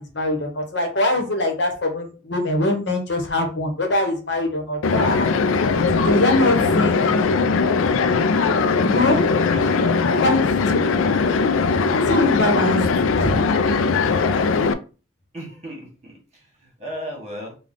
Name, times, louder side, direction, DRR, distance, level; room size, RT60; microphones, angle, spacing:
voice 1, 0.0-5.3 5.8-7.3 8.8-9.2 10.1-10.6 11.7-13.4, left 1 dB, 60° left, 3 dB, 1.0 m, -23 dB
sound 1, 4.8-14.7, left 4 dB, 90° left, 0.4 m, -20 dB
voice 2, 9.5-10.0 15.3-16.4 16.8-17.5, equal, 35° right, 1 dB, 1.3 m, -35 dB
3.4 x 2.3 x 3.7 m, 0.35 s
head